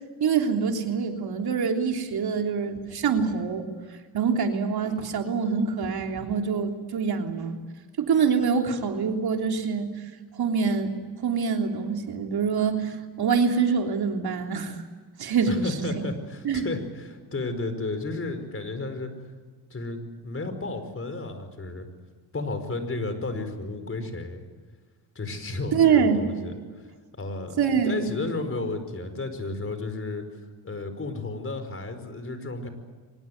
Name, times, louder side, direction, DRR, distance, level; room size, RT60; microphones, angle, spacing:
voice 1, 0.2-3.7 4.1-7.6 8.0-9.9 10.4-10.9 11.2-14.8 15.2-15.9 16.4-16.7 25.7-26.2 27.6-28.1, right 6 dB, 65° right, 3 dB, 3.4 m, -25 dB
voice 2, 15.5-19.1 19.7-21.9 22.3-24.4 25.1-26.9 27.2-30.3 30.6-32.7, left 2 dB, 30° left, 9 dB, 5.0 m, -33 dB
24.5 x 20.5 x 9.5 m, 1.5 s
cardioid pair, 85°, 41 cm